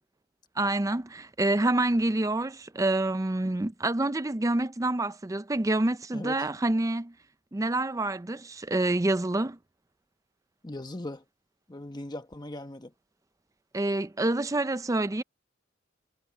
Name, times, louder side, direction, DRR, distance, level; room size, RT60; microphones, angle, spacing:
voice 1, 0.6-7.1 7.5-9.6 13.7-15.2, right 2 dB, 15° right, 0.5 m, -27 dB
voice 2, 10.6-11.2 11.7-12.9, left 1 dB, 20° left, 1.1 m, -38 dB
head